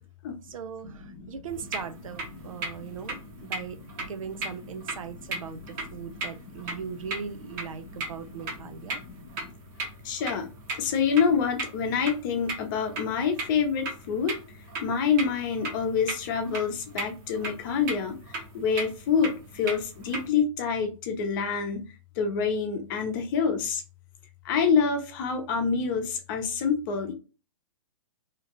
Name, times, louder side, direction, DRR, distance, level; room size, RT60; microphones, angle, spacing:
voice 1, 0.5-9.0, right 6 dB, 75° right, 0.5 m, -39 dB
sound 1, 1.5-20.3, right 3 dB, 35° right, 1.0 m, -38 dB
voice 2, 2.4-2.9 6.1-6.7 7.9-8.0 8.6-9.5 10.0-10.5 10.8-14.4 14.8-18.2 18.5-21.9 22.2-23.8 24.4-27.1, left 6 dB, 40° left, 0.7 m, -27 dB
2.8 x 2.4 x 2.9 m
hypercardioid pair, 140°, 17 cm